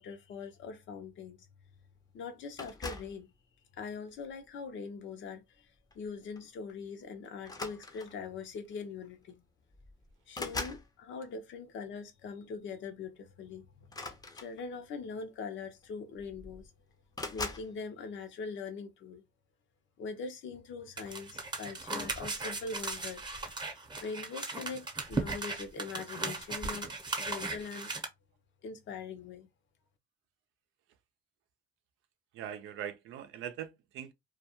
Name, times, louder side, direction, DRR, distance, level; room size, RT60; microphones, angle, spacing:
voice 1, 0.0-1.5 2.1-3.3 3.8-5.7 6.0-9.4 10.3-13.7 14.3-16.7 17.3-19.2 20.0-23.2 24.0-26.9 27.2-27.9 28.6-29.5, left 5 dB, 70° left, 0.7 m, -42 dB
sound 1, 2.6-3.2 4.1-4.4 5.9-6.1 6.4-6.5 7.4-8.3 9.3-9.4 9.7-10.9 13.8-14.9 15.8-15.9 16.2-16.7 17.1-17.7, left 3 dB, 20° left, 0.5 m, -41 dB
sound 2, 21.0-28.0, right 3 dB, 20° right, 0.7 m, -37 dB
voice 2, 32.3-34.1, right 9 dB, 85° right, 0.5 m, -41 dB
2.3 x 2.2 x 2.8 m
cardioid pair, 90°, 20 cm